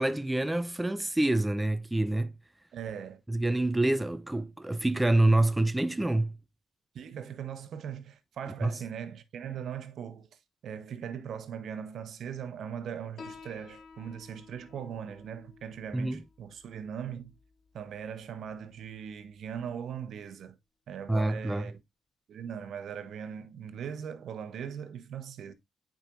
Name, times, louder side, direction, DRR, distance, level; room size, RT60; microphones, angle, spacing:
voice 1, 0.0-2.3 3.3-6.4 8.6-8.8 15.9-16.2 21.1-21.7, right 2 dB, 10° right, 0.4 m, -27 dB
voice 2, 2.7-3.2 6.9-10.3 10.6-17.3 17.7-20.6 20.9-21.8 22.3-25.5, right 8 dB, 65° right, 1.0 m, -40 dB
Piano, 13.2-20.2, left 4 dB, 55° left, 1.3 m, -54 dB
8.8 x 5.0 x 2.6 m
cardioid pair, 90°, 0 cm